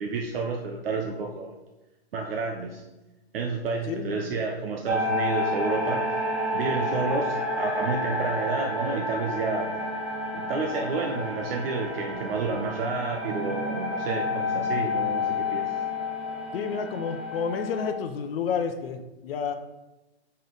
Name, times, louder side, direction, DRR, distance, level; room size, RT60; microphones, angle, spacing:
voice 1, 0.0-1.5 2.1-2.8 3.3-6.1 6.5-9.7 10.3-15.7, right 4 dB, 60° right, 1 dB, 0.9 m, -30 dB
voice 2, 3.9-4.2 16.5-19.5, left 6 dB, 60° left, 7 dB, 0.8 m, -30 dB
sound 1, 4.9-17.9, left 2 dB, 5° right, 0.4 m, -30 dB
5.5 x 5.0 x 4.0 m, 1.0 s
hypercardioid pair, 140°, 33 cm